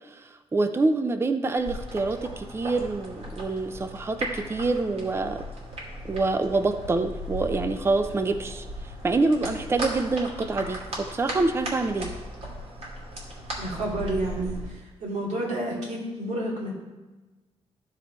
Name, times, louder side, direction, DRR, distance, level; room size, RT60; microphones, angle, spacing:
voice 1, 0.1-5.4 6.0-8.7 9.0-12.1, right 3 dB, 20° right, 8 dB, 0.5 m, -26 dB
sound 1, 1.6-14.7, equal, 65° right, 2.5 m, -37 dB
voice 2, 13.6-14.6 15.0-16.7, right 1 dB, 90° right, -3 dB, 2.5 m, -29 dB
13.5 x 4.8 x 4.4 m, 1.2 s
wide cardioid pair, 135°, 11 cm